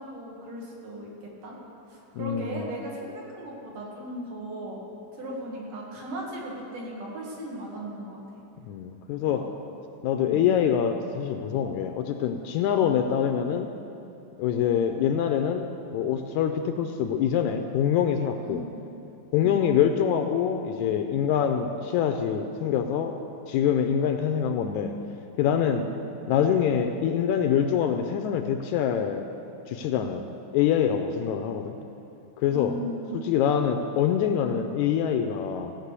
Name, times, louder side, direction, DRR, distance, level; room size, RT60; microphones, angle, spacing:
voice 1, 0.0-1.6 1.9-4.8 5.1-8.4 9.2-9.5 10.2-10.5 18.4-18.7 19.4-19.6 25.8-25.9 32.5-33.2, right 1 dB, 80° right, -3 dB, 3.7 m, -37 dB
voice 2, 2.2-2.7 8.7-9.5 10.0-13.7 14.4-18.6 19.3-23.2 23.5-25.0 25.4-25.9 26.3-29.2 29.7-30.3 30.5-31.8 32.4-32.8 33.2-35.7, left 8 dB, 80° left, 6 dB, 1.8 m, -25 dB
17.0 x 6.0 x 8.2 m, 2.8 s
omnidirectional pair, 3.7 m